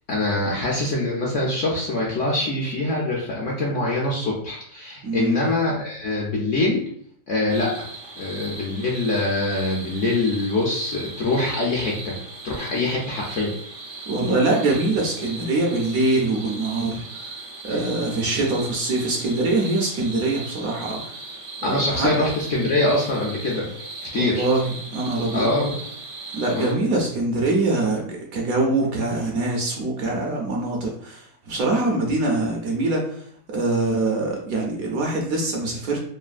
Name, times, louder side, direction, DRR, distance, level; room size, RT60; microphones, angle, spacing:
voice 1, 0.1-6.9 7.3-7.9 8.2-12.2 12.4-13.5 17.7-17.8 21.6-23.7 24.1-24.5 25.3-25.7 26.5-26.8, left 2 dB, 65° left, -3 dB, 0.7 m, -24 dB
voice 2, 5.0-5.4 14.1-17.3 17.6-21.1 21.6-22.1 24.1-25.5 26.3-36.0, right 2 dB, 70° right, -1 dB, 0.9 m, -24 dB
sound 1, 7.5-26.7, right 3 dB, 85° right, 0.4 m, -38 dB
3.3 x 2.2 x 2.4 m, 0.62 s
omnidirectional pair, 1.8 m